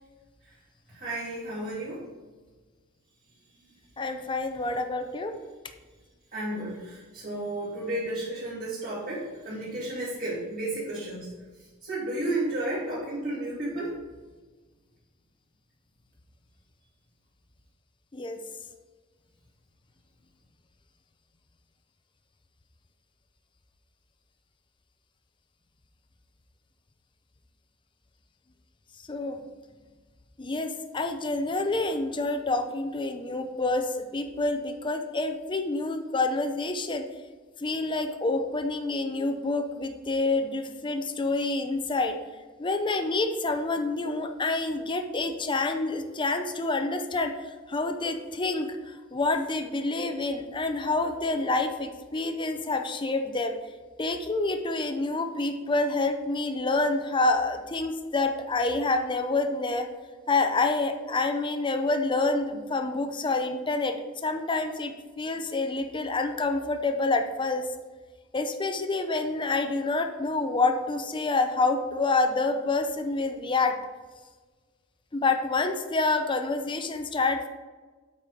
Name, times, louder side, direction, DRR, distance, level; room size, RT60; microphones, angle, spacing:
voice 1, 0.9-2.0 6.3-11.3 11.8-14.0, right 1 dB, 40° right, -10 dB, 2.7 m, -32 dB
voice 2, 4.0-5.4 18.1-18.4 29.1-29.4 30.4-37.1 37.6-42.2 42.6-47.3 47.7-53.6 54.0-59.9 60.3-67.7 68.3-73.8 75.1-77.5, left 3 dB, 20° left, 6 dB, 0.6 m, -27 dB
8.3 x 4.9 x 5.1 m, 1.4 s
head